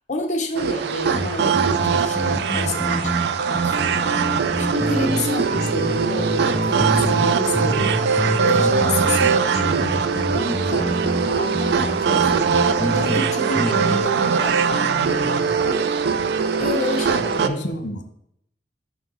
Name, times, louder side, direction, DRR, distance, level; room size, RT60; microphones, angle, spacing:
voice 1, 0.1-3.1 3.5-4.1 4.6-8.0 8.4-16.1 16.6-17.7, left 2 dB, 40° left, 2 dB, 0.9 m, -29 dB
sound 1, 0.5-17.5, right 6 dB, 60° right, 0.3 m, -21 dB
sound 2, 1.1-5.2 5.6-7.3 7.5-13.2 13.6-14.0, right 1 dB, 5° left, 0.5 m, -27 dB
voice 2, 14.8-15.5 17.1-18.0, left 1 dB, 70° left, 4 dB, 1.1 m, -32 dB
6.2 x 3.6 x 5.3 m, 0.73 s
head